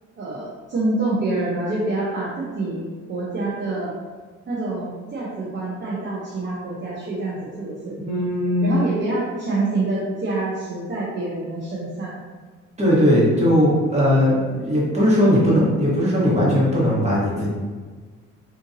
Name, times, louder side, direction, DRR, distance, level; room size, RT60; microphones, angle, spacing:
voice 1, 0.2-3.9 4.5-7.9 8.6-12.1, right 2 dB, 40° right, -6 dB, 0.7 m, -26 dB
voice 2, 8.0-8.7 12.8-17.5, equal, 20° right, -7 dB, 1.4 m, -18 dB
3.7 x 2.6 x 2.6 m, 1.5 s
cardioid pair, 90°, 30 cm